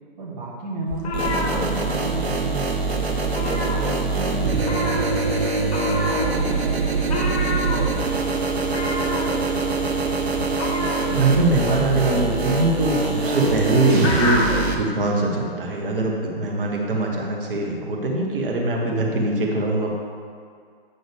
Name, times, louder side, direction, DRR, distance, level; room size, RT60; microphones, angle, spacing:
voice 1, 0.2-2.8 3.4-8.3, right 3 dB, 40° right, -4 dB, 1.4 m, -33 dB
sound 1, 0.9-2.4 2.6-2.9 3.2-4.3 4.6-14.7, left 2 dB, 40° left, 1.5 m, -29 dB
sound 2, 1.1-14.7, right 3 dB, 75° right, 1.2 m, -24 dB
voice 2, 11.1-14.4 14.8-19.9, right 2 dB, 60° right, -1 dB, 1.6 m, -22 dB
9.8 x 6.2 x 3.6 m, 2.2 s
figure-of-eight pair, 125°, 31 cm